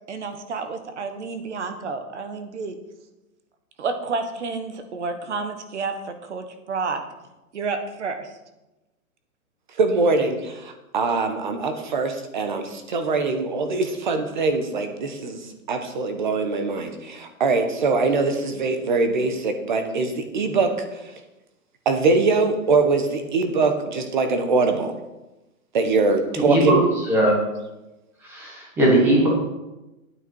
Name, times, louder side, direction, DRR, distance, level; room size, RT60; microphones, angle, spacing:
voice 1, 0.1-2.8 3.8-7.0 7.5-8.3, right 4 dB, 50° right, 8 dB, 1.4 m, -30 dB
voice 2, 9.8-15.4 15.7-20.7 21.8-24.9 25.7-26.8, right 3 dB, 35° right, 7 dB, 1.0 m, -22 dB
voice 3, 26.4-26.8 27.1-27.3 28.3-29.3, right 1 dB, 5° right, -3 dB, 1.2 m, -19 dB
9.3 x 9.0 x 4.6 m, 1.0 s
hypercardioid pair, 175°, 43 cm